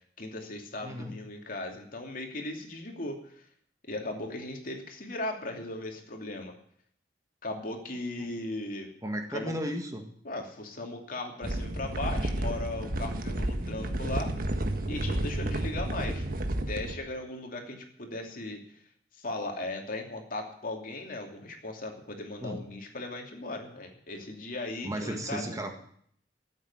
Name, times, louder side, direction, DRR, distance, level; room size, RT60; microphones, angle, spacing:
voice 1, 0.2-3.4 3.9-6.5 7.4-8.9 9.3-9.6 10.2-14.3 14.9-16.3 16.7-18.6 19.1-25.6, left 2 dB, 55° left, 3 dB, 2.9 m, -37 dB
voice 2, 0.8-1.1 8.2-8.3 9.0-10.0 22.4-22.6 24.8-25.7, equal, 20° right, 4 dB, 1.7 m, -34 dB
sound 1, 11.4-17.0, right 1 dB, 55° right, 1.4 m, -31 dB
14.0 x 8.3 x 9.8 m, 0.63 s
head